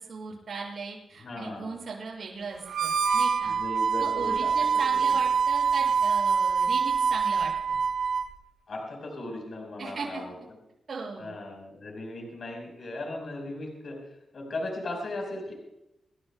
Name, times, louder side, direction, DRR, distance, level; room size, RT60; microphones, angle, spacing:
voice 1, 0.0-3.5 4.0-7.8 9.8-10.2 10.9-11.3, right 4 dB, 55° right, -2 dB, 6.6 m, -38 dB
voice 2, 1.2-1.7 3.4-4.5 4.9-5.0 8.7-10.3 11.2-14.0 14.3-15.5, left 2 dB, 55° left, 1 dB, 4.7 m, -37 dB
Harmonica, 2.6-8.3, right 6 dB, 80° right, 1.2 m, -25 dB
27.5 x 12.5 x 2.3 m, 0.88 s
cardioid pair, 95°, 0 cm